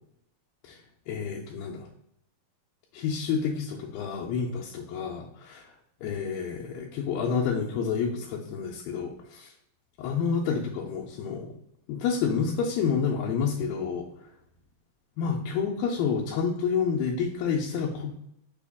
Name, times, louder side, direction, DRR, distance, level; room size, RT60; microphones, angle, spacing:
voice 1, 1.1-1.9 2.9-5.7 6.0-9.5 10.0-11.5 11.9-14.1 15.2-18.1, left 6 dB, 85° left, -2 dB, 2.3 m, -29 dB
5.7 x 2.3 x 3.4 m, 0.77 s
omnidirectional pair, 4.2 m